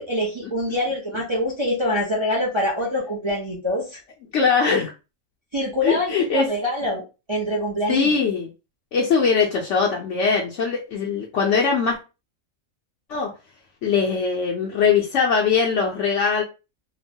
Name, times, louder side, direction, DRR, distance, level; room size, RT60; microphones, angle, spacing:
voice 1, 0.0-4.0 5.5-7.0 7.3-8.2, left 1 dB, 35° right, -2 dB, 0.5 m, -25 dB
voice 2, 4.3-4.9 5.8-6.5 7.9-8.5 8.9-12.0 13.1-13.3 13.8-16.4, left 5 dB, 70° left, -1 dB, 0.8 m, -21 dB
2.9 x 2.1 x 2.6 m, 0.30 s
omnidirectional pair, 1.4 m